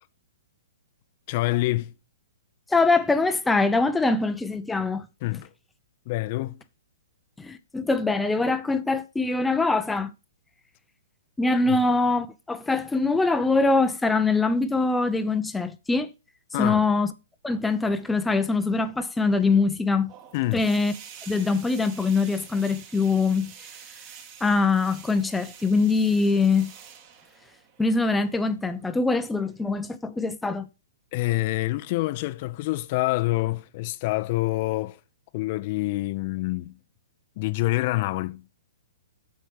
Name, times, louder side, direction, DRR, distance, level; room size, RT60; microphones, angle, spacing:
voice 1, 1.3-1.9 5.2-5.5 6.1-6.6 11.7-11.8 16.5-16.8 20.3-20.7 31.1-35.0 35.3-36.7 37.4-38.4, left 19 dB, 45° left, 0.7 m, -26 dB
voice 2, 2.7-5.1 7.4-10.1 11.4-16.1 16.6-17.1 17.4-20.1 20.5-20.9 21.3-23.5 24.4-26.7 27.8-30.7, left 3 dB, 5° left, 0.7 m, -23 dB
sound 1, 20.1-30.0, right 7 dB, 35° right, 1.9 m, -48 dB
6.9 x 6.8 x 4.7 m
hypercardioid pair, 130°, 0 cm